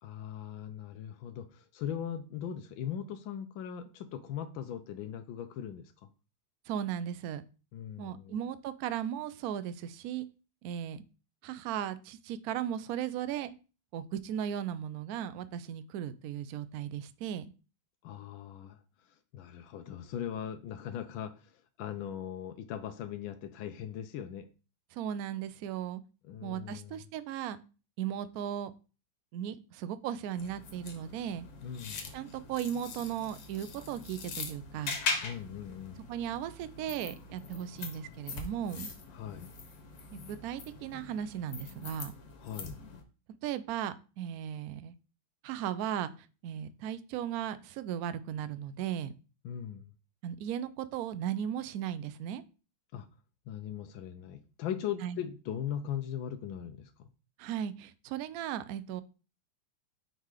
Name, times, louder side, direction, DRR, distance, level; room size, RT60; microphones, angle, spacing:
voice 1, 0.0-6.1 7.7-8.4 18.0-18.8 19.3-24.5 26.2-27.0 31.6-32.0 35.2-36.0 39.1-39.5 42.4-42.8 49.4-49.9 52.9-53.1 53.5-57.1, left 9 dB, 90° left, 1.4 m, -39 dB
voice 2, 6.7-7.4 8.0-10.3 10.6-11.0 11.4-13.5 13.9-17.4 24.9-26.0 26.4-27.6 28.0-28.7 29.3-31.4 32.1-35.0 36.1-38.9 40.1-42.1 43.4-44.9 45.4-46.1 46.4-49.1 50.2-52.4 55.0-55.2 57.4-59.0, right 10 dB, 80° right, 0.8 m, -36 dB
sound 1, 30.4-43.0, left 4 dB, 75° left, 1.7 m, -42 dB
5.4 x 3.8 x 4.8 m
omnidirectional pair, 2.1 m